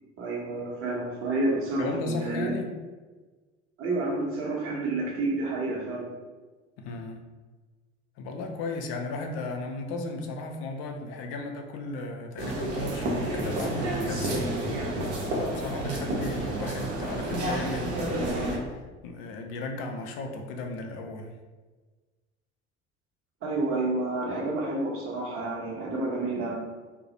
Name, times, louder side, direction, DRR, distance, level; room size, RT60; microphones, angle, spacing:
voice 1, 0.2-2.5 3.8-6.1 23.4-26.5, right 2 dB, 35° right, -3 dB, 0.8 m, -29 dB
voice 2, 1.8-2.7 6.8-7.3 8.2-14.5 15.3-21.3, left 2 dB, 40° left, 3 dB, 0.4 m, -35 dB
sound 1, 12.4-18.6, right 1 dB, 65° right, 0.7 m, -30 dB
2.3 x 2.0 x 2.7 m, 1.3 s
figure-of-eight pair, 65°, 36 cm